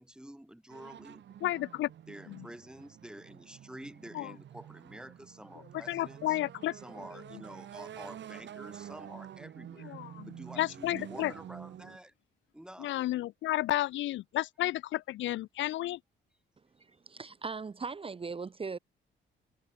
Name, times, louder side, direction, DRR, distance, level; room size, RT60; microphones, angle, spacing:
voice 1, 0.0-1.2 2.1-6.4 6.7-10.0 10.3-12.1 12.5-13.0, right 1 dB, 5° right, 2.1 m, -49 dB
sound 1, 0.7-12.0, right 10 dB, 65° right, 3.3 m, -48 dB
voice 2, 1.4-1.9 2.3-2.5 4.1-4.3 5.7-6.8 9.8-11.3 12.8-16.0, left 15 dB, 70° left, 0.4 m, -32 dB
voice 3, 16.8-18.8, right 4 dB, 25° right, 0.9 m, -39 dB
cardioid pair, 90°, 20 cm